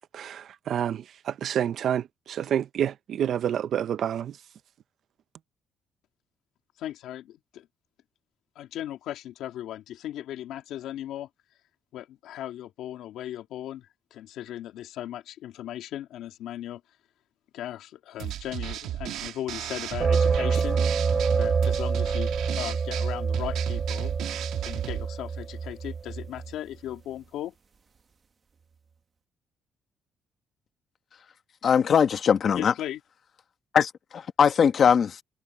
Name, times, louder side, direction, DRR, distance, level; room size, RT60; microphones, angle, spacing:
voice 1, 0.0-4.4, right 9 dB, 50° right, 0.6 m, -28 dB
voice 2, 6.8-7.7 8.5-11.3 11.9-16.8 17.5-20.8 21.4-24.1 24.6-27.5 32.5-33.0, left 12 dB, 80° left, 2.6 m, -37 dB
sound 1, 18.2-25.1, right 12 dB, 85° right, 1.5 m, -35 dB
sound 2, 20.0-26.5, right 5 dB, 30° right, 1.1 m, -26 dB
voice 3, 31.6-32.7 33.7-35.2, left 7 dB, 40° left, 1.1 m, -21 dB
cardioid pair, 165°, 0 cm